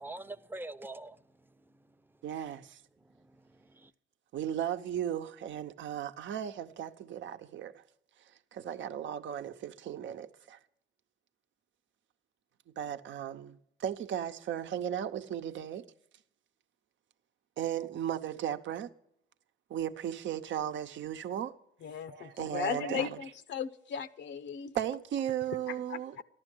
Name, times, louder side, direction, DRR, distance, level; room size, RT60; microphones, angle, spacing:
voice 1, 0.0-2.2 3.0-3.9, right 2 dB, 10° right, 0.7 m, -46 dB
voice 2, 2.2-2.8 4.3-7.8 8.5-10.6 12.8-15.9 17.6-18.9 19.7-21.5 22.1-23.2 24.7-26.2, right 10 dB, 70° right, 0.9 m, -36 dB
voice 3, 21.8-24.7 25.7-26.2, left 8 dB, 65° left, 0.8 m, -37 dB
14.0 x 11.5 x 6.2 m
cardioid pair, 90°, 20 cm